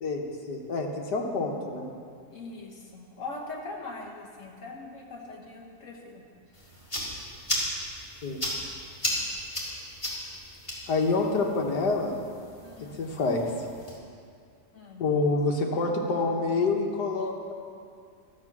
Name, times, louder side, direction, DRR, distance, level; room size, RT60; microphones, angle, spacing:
voice 1, 0.0-1.9 8.2-8.4 10.9-12.2 13.0-13.4 15.0-17.5, left 3 dB, 85° left, 1 dB, 1.8 m, -27 dB
voice 2, 2.3-6.2 6.5-6.6 12.6-13.0 14.7-15.1, left 3 dB, 50° left, 0 dB, 1.5 m, -41 dB
sound 1, 6.5-14.0, equal, 20° left, 2.0 m, -35 dB
12.5 x 7.4 x 6.0 m, 2.3 s
omnidirectional pair, 1.8 m